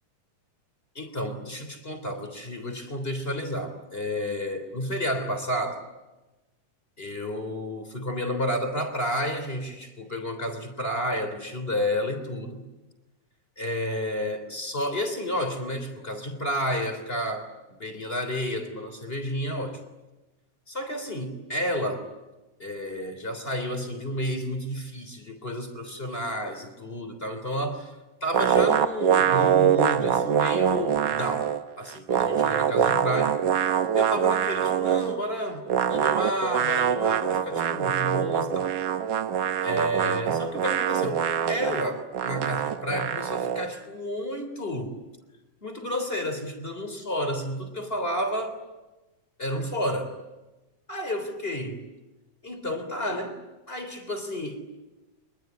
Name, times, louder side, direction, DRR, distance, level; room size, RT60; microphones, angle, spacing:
voice 1, 1.0-5.8 7.0-12.6 13.6-19.8 20.7-22.1 22.6-33.4 33.9-38.7 39.6-45.0 45.6-48.6 49.4-50.1 50.9-51.8 52.4-53.4 53.7-54.6, equal, 20° left, 7 dB, 3.4 m, -31 dB
sound 1, 28.3-31.6 31.9-35.2 35.7-43.7, right 8 dB, 75° right, 1.0 m, -24 dB
25.0 x 21.5 x 9.7 m, 1.1 s
omnidirectional pair, 3.4 m